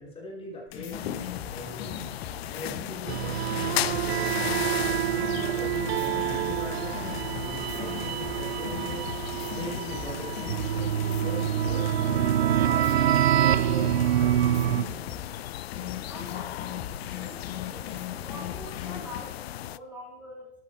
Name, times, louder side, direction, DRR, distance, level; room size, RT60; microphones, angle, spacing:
voice 1, 0.0-1.9 2.5-4.5 5.1-9.0 9.5-11.9 12.6-15.0, left 1 dB, 15° left, -4 dB, 5.4 m, -41 dB
sound 1, 0.7-15.3 15.7-19.2, left 8 dB, 35° left, 1.8 m, -39 dB
sound 2, 0.9-19.8, left 13 dB, 60° left, 0.4 m, -37 dB
sound 3, 3.1-14.8, right 12 dB, 60° right, 0.6 m, -26 dB
voice 2, 16.1-18.0 18.2-20.5, left 1 dB, 5° right, -7 dB, 3.9 m, -44 dB
14.5 x 11.0 x 3.6 m, 0.78 s
figure-of-eight pair, 105°, 36 cm